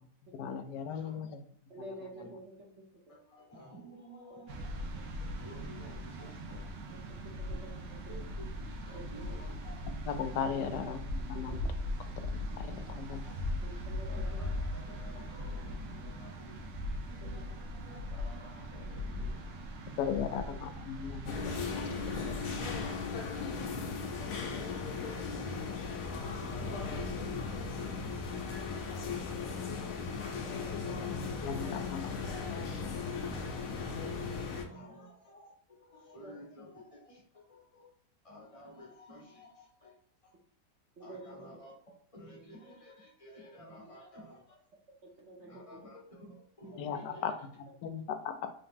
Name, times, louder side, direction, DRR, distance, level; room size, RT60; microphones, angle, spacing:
voice 1, 0.3-1.3 2.2-2.3 10.1-11.0 11.3-11.6 12.2-13.2 20.0-21.3 21.7-21.8 22.1-22.3 31.2-32.1 46.8-47.3 47.8-48.3, left 7 dB, 85° left, 8 dB, 1.2 m, -37 dB
voice 2, 0.9-1.2 2.1-2.2 3.1-7.5 8.1-9.8 12.5-12.9 13.2-13.3 14.1-19.9 20.2-20.3 23.3-26.1 26.4-28.5 28.8-29.8 30.4-32.1 32.6-37.9 38.2-39.9 40.2-40.3 41.0-41.7 42.1-44.6 45.4-47.2, left 1 dB, 25° left, -2 dB, 0.8 m, -53 dB
voice 3, 1.7-2.7 3.1-3.2 7.4-7.7 8.9-9.3 10.5-11.0 11.6-11.9 13.6-14.4 17.2-17.4 20.0-20.6 24.4-24.6 26.6-26.9 30.3-31.0 36.2-36.3 41.0-41.5 45.2-45.9 46.6-47.2, right 1 dB, 50° right, -2 dB, 0.9 m, -49 dB
sound 1, 4.5-22.8, left 1 dB, 85° right, 1.4 m, -39 dB
sound 2, 21.3-34.6, left 4 dB, 65° left, 1.0 m, -37 dB
3.7 x 2.9 x 3.5 m, 0.63 s
omnidirectional pair, 1.8 m